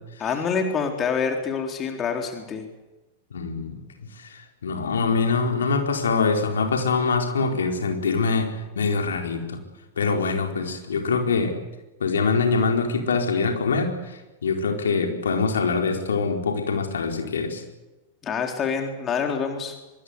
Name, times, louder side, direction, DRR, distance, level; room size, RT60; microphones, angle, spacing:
voice 1, 0.2-2.6 18.2-19.8, left 6 dB, 25° left, 4 dB, 3.8 m, -26 dB
voice 2, 3.3-8.5 8.7-9.6 10.0-11.6 12.0-17.6, left 4 dB, 70° left, 3 dB, 4.9 m, -24 dB
25.0 x 23.0 x 8.4 m, 1.1 s
figure-of-eight pair, 90°, 0 cm